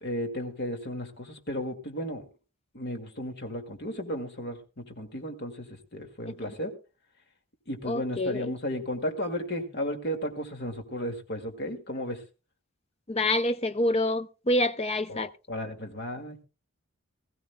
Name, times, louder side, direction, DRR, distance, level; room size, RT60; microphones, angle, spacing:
voice 1, 0.0-2.3 2.7-6.7 7.7-12.2 15.1-15.2 15.5-16.4, equal, 50° left, 2.1 m, -34 dB
voice 2, 7.9-8.5 13.1-15.3, left 1 dB, 25° left, 0.6 m, -27 dB
20.0 x 15.0 x 2.2 m
head